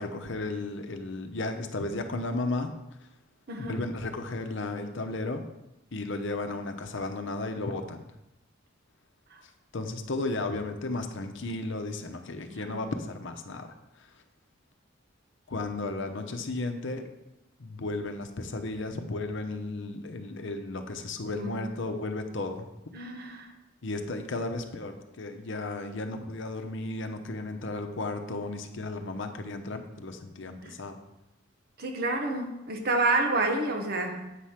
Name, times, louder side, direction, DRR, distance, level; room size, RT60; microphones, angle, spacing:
voice 1, 0.0-2.7 3.6-5.4 5.9-8.0 9.7-14.1 15.5-17.1 17.6-22.7 23.8-31.0, left 2 dB, 65° left, 6 dB, 0.8 m, -34 dB
voice 2, 3.5-3.8 12.5-12.8 21.3-21.7 22.9-23.5 30.6-30.7 31.8-34.4, right 2 dB, 50° right, 3 dB, 1.2 m, -29 dB
8.4 x 4.9 x 5.8 m, 0.91 s
head